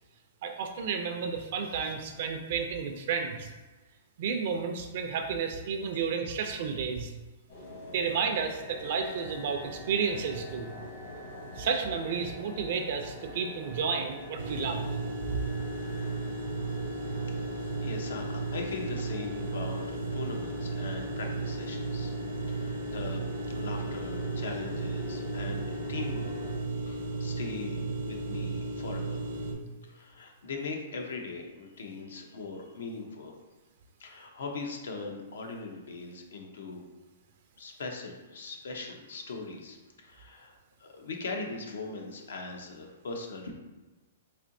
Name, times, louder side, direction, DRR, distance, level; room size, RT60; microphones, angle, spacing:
voice 1, 0.4-3.5 4.2-7.1 7.9-10.7 11.6-14.9 15.3-15.4, right 6 dB, 55° right, 5 dB, 0.4 m, -32 dB
sound 1, 7.5-26.6, equal, 60° left, 1.3 m, -45 dB
sound 2, 14.4-29.5, right 3 dB, 75° right, 0.7 m, -34 dB
voice 2, 17.8-22.1 22.5-26.3 26.9-27.8 28.0-29.3 29.8-33.3 34.0-36.8 37.6-43.5, left 3 dB, 85° left, 2 dB, 0.7 m, -40 dB
4.2 x 2.8 x 2.6 m, 1.2 s
hypercardioid pair, 155°, 0 cm